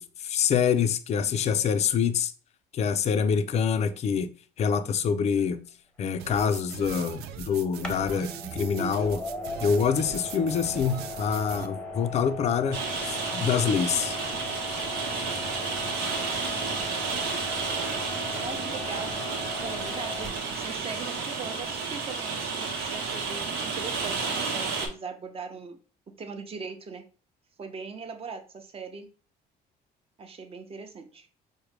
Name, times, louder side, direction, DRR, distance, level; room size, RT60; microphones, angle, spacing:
voice 1, 0.0-2.3 2.7-4.3 4.6-5.6 6.0-9.2 9.6-14.2, left 7 dB, 40° left, 0.4 m, -26 dB
sound 1, 5.4-5.5 7.8-20.8, left 2 dB, 5° left, 0.7 m, -38 dB
sound 2, 6.2-11.7, right 9 dB, 70° right, 0.4 m, -41 dB
Rain, 12.7-24.9, right 4 dB, 90° right, 1.0 m, -31 dB
voice 2, 18.3-19.1 19.6-25.8 26.2-27.0 27.6-29.1 30.2-31.3, right 5 dB, 35° right, 0.7 m, -40 dB
4.6 x 2.1 x 3.2 m
cardioid pair, 110°, 17 cm